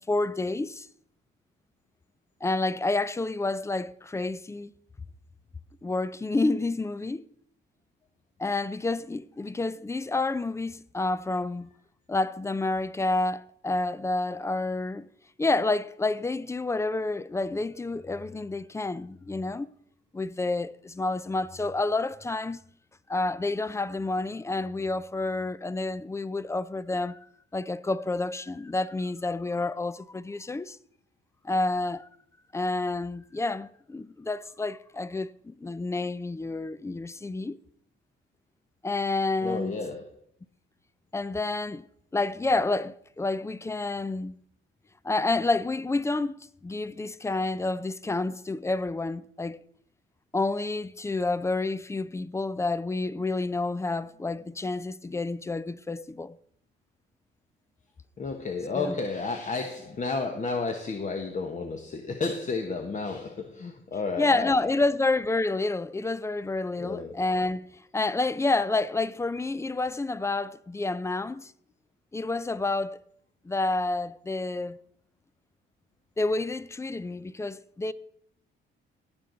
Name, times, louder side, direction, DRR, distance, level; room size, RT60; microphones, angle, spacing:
voice 1, 0.1-0.9 2.4-4.7 5.8-7.2 8.4-11.7 12.1-15.1 15.4-19.7 20.1-22.6 23.1-27.3 27.5-30.8 31.4-32.1 32.5-37.6 38.8-39.8 41.1-41.9 42.1-44.4 45.0-46.3 46.6-49.6 50.3-56.4 58.7-59.0 64.2-71.5 72.1-73.0 73.4-74.8 76.2-77.9, left 2 dB, 15° left, 0.4 m, -29 dB
voice 2, 39.4-40.1 58.2-64.6 66.7-67.1, left 4 dB, 40° left, 1.2 m, -32 dB
17.5 x 6.3 x 3.9 m
cardioid pair, 90°, 20 cm